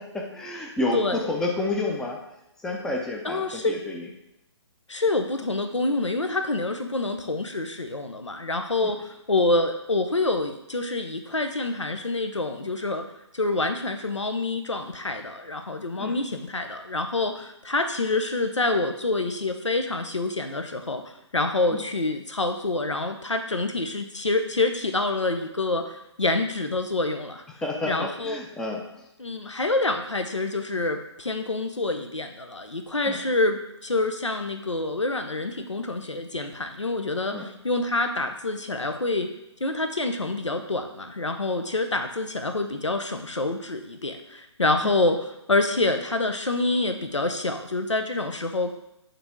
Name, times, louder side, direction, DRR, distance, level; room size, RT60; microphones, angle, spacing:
voice 1, 0.0-2.2 2.6-4.1 8.8-8.9 16.0-16.2 21.7-21.8 27.6-29.1 33.0-33.2 37.3-37.5 44.8-44.9, left 2 dB, 5° left, 0 dB, 0.5 m, -30 dB
voice 2, 3.2-3.8 4.9-13.0 13.3-27.4 27.8-28.4 29.2-39.3 39.6-48.7, left 2 dB, 85° left, 7 dB, 0.8 m, -27 dB
8.8 x 3.4 x 3.6 m, 0.86 s
figure-of-eight pair, 135°, 15 cm